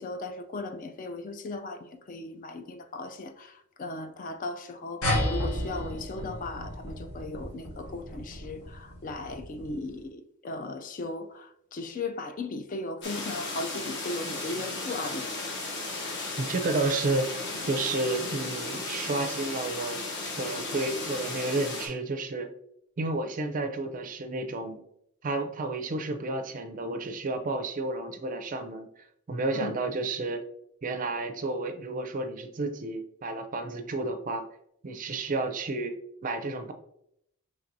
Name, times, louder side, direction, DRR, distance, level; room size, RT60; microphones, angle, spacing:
voice 1, 0.0-15.5 29.5-29.8, left 2 dB, 35° left, 0.3 m, -37 dB
sound 1, 5.0-9.9, left 1 dB, 80° left, 1.5 m, -33 dB
sound 2, 13.0-21.9, left 2 dB, 50° left, 1.1 m, -35 dB
voice 2, 16.4-17.3 17.6-20.0 20.4-22.5 23.0-24.8 25.2-28.9 29.3-30.4 30.8-34.4 34.8-35.9 36.2-36.7, right 2 dB, 35° right, 0.4 m, -31 dB
5.7 x 3.2 x 2.6 m
head